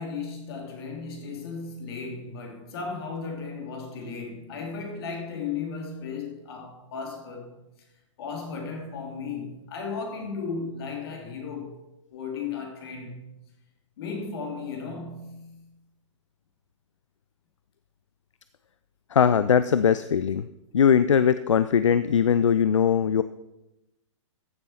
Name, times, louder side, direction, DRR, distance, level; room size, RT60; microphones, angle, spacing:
voice 1, 0.0-7.6 8.2-11.8 12.1-13.3 14.0-15.7, left 5 dB, 50° left, 2.8 m, -35 dB
voice 2, 19.1-20.5 20.7-23.2, left 7 dB, 75° left, 0.5 m, -20 dB
14.5 x 6.8 x 4.3 m
figure-of-eight pair, 110°, 16 cm